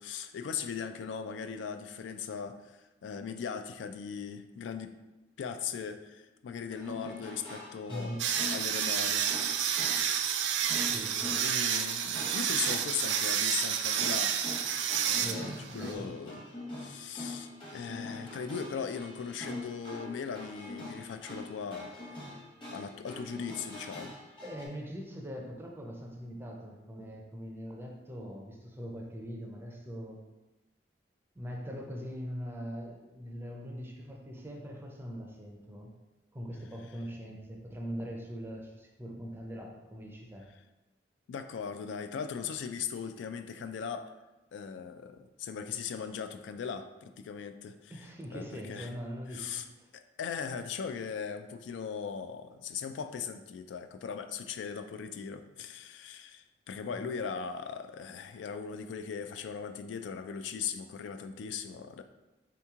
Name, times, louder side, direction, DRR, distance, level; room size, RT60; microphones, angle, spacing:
voice 1, 0.0-4.9 5.4-9.2 11.4-16.4 16.8-22.3 22.7-24.1 41.3-44.1 44.5-48.0 48.3-48.9 49.3-49.6 49.9-62.0, left 6 dB, 85° left, 9 dB, 0.3 m, -39 dB
sound 1, 6.7-24.7, left 1 dB, 30° left, 0.9 m, -44 dB
sound 2, 8.2-15.9, right 8 dB, 75° right, 0.3 m, -30 dB
voice 2, 10.9-11.4 15.2-16.2 24.4-30.2 31.3-35.9 36.3-40.5 47.9-49.9 56.9-57.2, equal, 15° right, 0 dB, 0.5 m, -42 dB
3.5 x 2.9 x 3.5 m, 1.1 s
head